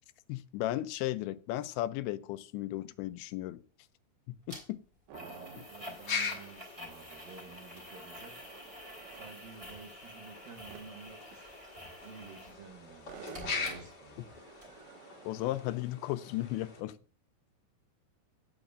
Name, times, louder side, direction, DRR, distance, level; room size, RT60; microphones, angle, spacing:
voice 1, 0.3-3.6 4.3-4.8 5.6-5.7 14.2-14.3 15.3-17.0, left 15 dB, 85° left, 2.8 m, -35 dB
sound 1, 4.5-4.6 5.1-12.6 12.9-14.3 14.6-14.7, equal, 15° right, 3.5 m, -49 dB
sound 2, 5.1-5.8 6.2-6.3 6.5-9.3 10.7-11.0 11.3-11.4 12.5-12.7 13.0-15.6, right 6 dB, 90° right, 3.9 m, -51 dB
sound 3, 5.3-16.8, left 5 dB, 35° left, 1.8 m, -43 dB
voice 2, 5.7-8.5 9.1-14.4, right 5 dB, 65° right, 2.7 m, -52 dB
16.5 x 9.1 x 2.5 m
omnidirectional pair, 5.1 m